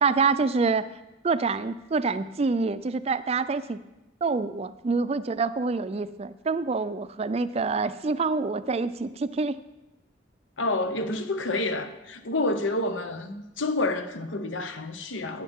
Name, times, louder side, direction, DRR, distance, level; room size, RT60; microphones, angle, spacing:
voice 1, 0.0-0.8 1.2-3.8 4.2-9.6, right 4 dB, 35° right, 14 dB, 0.4 m, -26 dB
voice 2, 10.6-15.4, left 2 dB, 85° left, 8 dB, 0.9 m, -29 dB
12.5 x 9.4 x 3.6 m, 1.0 s
head